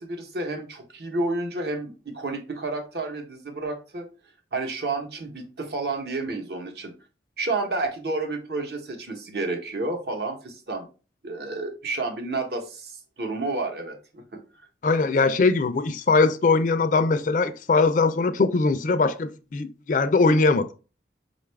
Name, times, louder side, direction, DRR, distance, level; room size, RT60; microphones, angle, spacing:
voice 1, 0.0-4.1 4.5-6.9 7.4-10.9 11.2-14.4, right 2 dB, 60° right, 0.9 m, -30 dB
voice 2, 14.8-20.7, left 3 dB, 45° left, 0.4 m, -21 dB
5.2 x 2.4 x 3.3 m
head